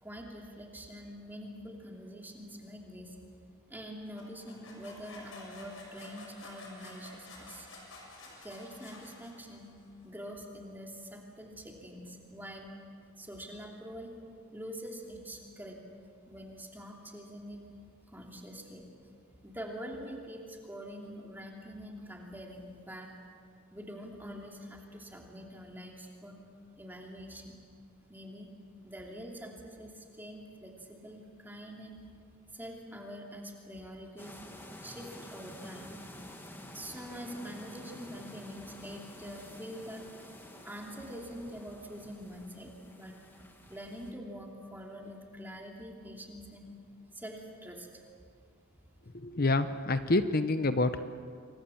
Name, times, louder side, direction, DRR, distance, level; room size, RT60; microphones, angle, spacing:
voice 1, 0.0-3.2 3.7-7.7 8.4-9.7 10.0-12.7 13.2-14.1 14.5-15.8 16.3-17.6 18.1-18.9 19.4-23.1 23.7-26.4 26.8-27.6 28.1-28.5 28.8-31.9 32.5-34.4 34.8-36.0 36.7-40.0 40.6-43.2 43.7-46.7 47.1-47.9, equal, 10° right, 0 dB, 2.9 m, -45 dB
sound 1, 4.2-9.8, left 2 dB, 65° left, 7.1 m, -50 dB
sound 2, 34.2-44.1, left 1 dB, 10° left, 1.9 m, -50 dB
voice 2, 49.1-51.0, left 2 dB, 40° left, 11 dB, 0.8 m, -27 dB
28.0 x 24.0 x 7.2 m, 2.2 s
head